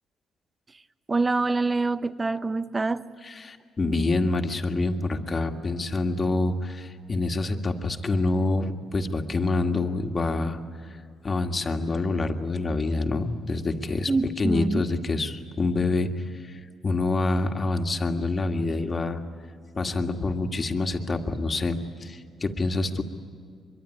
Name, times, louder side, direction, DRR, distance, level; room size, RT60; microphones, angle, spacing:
voice 1, 1.1-3.1 14.1-14.9, right 3 dB, 25° right, 13 dB, 0.9 m, -25 dB
voice 2, 3.2-10.6 11.2-14.1 14.4-19.2 19.8-23.0, left 2 dB, 35° left, 5 dB, 1.9 m, -26 dB
24.0 x 23.0 x 9.8 m, 2.3 s
cardioid pair, 90°, 0 cm